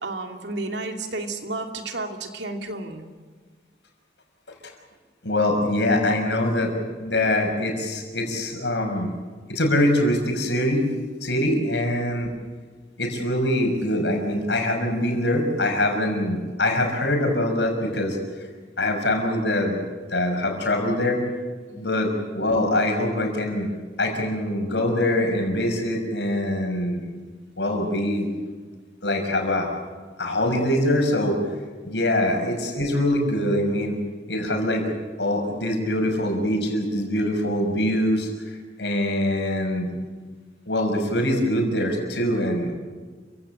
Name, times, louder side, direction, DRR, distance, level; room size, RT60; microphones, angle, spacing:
voice 1, 0.0-3.0 11.5-11.6 21.7-22.0 32.1-32.2, right 2 dB, 75° right, 4 dB, 2.7 m, -32 dB
voice 2, 5.2-6.7 7.0-9.1 9.5-10.9 11.2-12.3 13.0-18.2 18.8-19.8 20.1-21.2 21.8-23.7 24.0-27.0 27.6-28.3 29.0-29.7 30.2-31.4 31.8-34.0 34.3-34.8 35.2-38.3 38.8-39.9 40.7-42.7, left 1 dB, 75° left, 3 dB, 5.9 m, -23 dB
29.0 x 16.5 x 9.0 m, 1.5 s
head